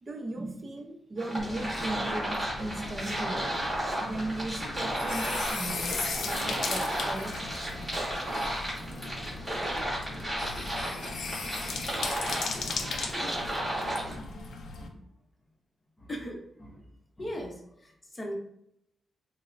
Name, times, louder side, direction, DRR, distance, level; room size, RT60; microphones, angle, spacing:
voice 1, 0.0-3.4 4.0-7.4, right 2 dB, 25° right, 2 dB, 0.6 m, -37 dB
sound 1, 1.2-14.1, right 1 dB, 5° right, 1.4 m, -33 dB
sound 2, 1.4-14.9, left 4 dB, 75° left, 0.4 m, -38 dB
voice 2, 16.0-16.8 17.2-17.5 17.8-18.3, equal, 20° left, 0 dB, 0.7 m, -39 dB
5.2 x 2.0 x 2.5 m, 0.73 s
wide cardioid pair, 175°, 0 cm